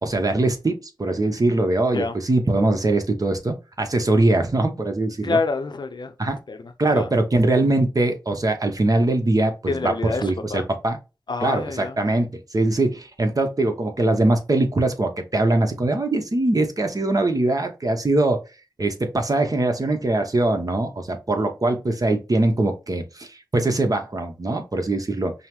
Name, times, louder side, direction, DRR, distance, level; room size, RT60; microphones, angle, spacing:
voice 1, 0.0-5.4 6.2-6.4 6.8-11.0 11.4-18.4 18.8-25.3, right 2 dB, 45° right, 0.9 m, -22 dB
voice 2, 5.2-6.1 6.5-7.1 9.7-10.7 11.3-12.0, left 3 dB, 65° left, 0.6 m, -27 dB
5.4 x 2.1 x 3.0 m
wide cardioid pair, 60°, 8 cm